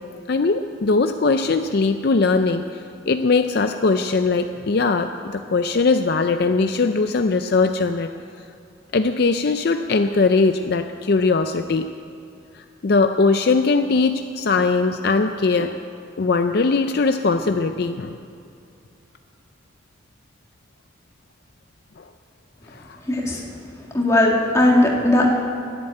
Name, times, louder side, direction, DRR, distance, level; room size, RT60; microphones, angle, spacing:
voice 1, 0.3-8.1 8.9-11.9 12.6-15.8 16.2-18.2 22.0-22.1 22.7-22.8, left 3 dB, 50° left, 8 dB, 0.4 m, -20 dB
voice 2, 23.1-23.4 23.9-25.4, left 1 dB, 15° left, -2 dB, 2.0 m, -18 dB
12.0 x 11.0 x 8.9 m, 2.5 s
head